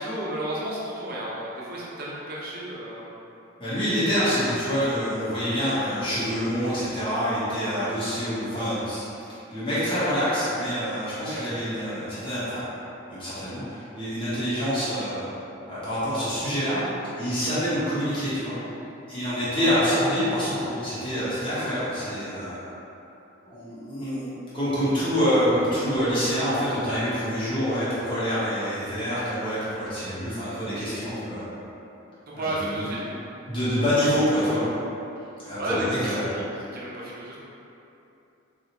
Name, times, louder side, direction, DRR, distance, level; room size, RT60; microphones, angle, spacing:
voice 1, 0.0-3.1 11.3-11.4 19.7-19.8 32.4-33.2 35.6-36.4 36.7-37.4, right 1 dB, 45° right, -7 dB, 0.6 m, -32 dB
voice 2, 3.6-9.0 9.5-12.7 13.1-15.3 15.7-16.8 17.2-18.5 19.1-22.7 23.5-31.4 32.3-32.9 33.5-34.6 35.4-36.3, equal, 25° left, -12 dB, 1.0 m, -26 dB
3.8 x 2.4 x 2.9 m, 2.9 s
head